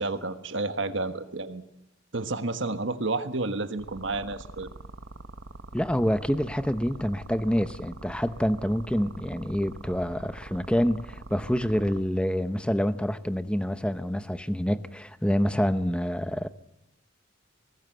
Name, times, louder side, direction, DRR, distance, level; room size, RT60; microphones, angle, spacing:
voice 1, 0.0-1.6 2.1-4.7, right 3 dB, 65° right, 1.5 m, -30 dB
sound 1, 3.8-12.0, right 2 dB, 85° right, 1.3 m, -43 dB
voice 2, 5.7-16.5, equal, 5° left, 0.8 m, -27 dB
23.0 x 19.0 x 8.0 m
head